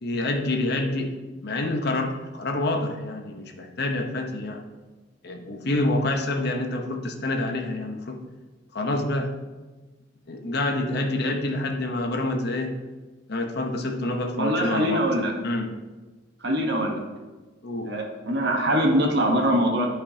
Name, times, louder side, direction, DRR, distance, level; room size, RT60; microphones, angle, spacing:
voice 1, 0.0-1.2 1.4-4.6 5.2-8.2 8.7-9.3 10.3-12.8 13.3-15.1 15.4-15.7 17.6-18.0, left 2 dB, 55° left, 3 dB, 0.9 m, -27 dB
voice 2, 14.4-15.3 16.4-17.0 17.9-19.9, equal, 60° right, 1 dB, 1.1 m, -23 dB
11.5 x 5.2 x 2.8 m, 1.2 s
head